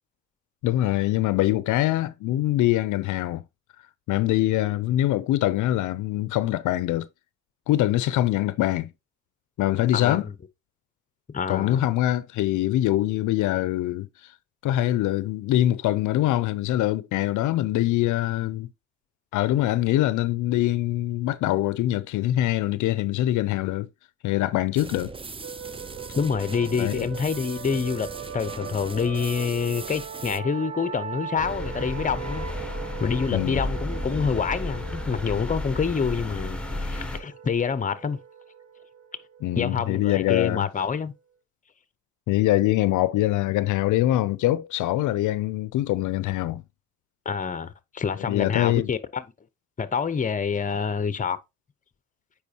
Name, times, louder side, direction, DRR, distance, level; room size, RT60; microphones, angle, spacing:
voice 1, 0.6-3.4 4.1-7.1 7.7-8.9 9.6-10.3 11.5-14.3 14.6-18.7 19.3-23.9 24.2-25.1 26.8-27.1 33.3-33.7 39.4-40.7 42.3-46.6 48.3-48.9, left 14 dB, 80° left, 0.5 m, -24 dB
voice 2, 9.9-10.3 11.3-11.9 26.2-28.1 28.3-32.5 33.0-38.2 39.5-41.1 47.2-49.2 49.8-51.4, left 6 dB, 25° left, 0.7 m, -27 dB
sound 1, 24.7-30.4, right 4 dB, 20° right, 0.5 m, -39 dB
sound 2, 25.4-40.8, right 7 dB, 65° right, 1.4 m, -40 dB
sound 3, 31.4-37.2, left 2 dB, 5° left, 1.3 m, -32 dB
8.2 x 5.0 x 2.8 m
cardioid pair, 90°, 30 cm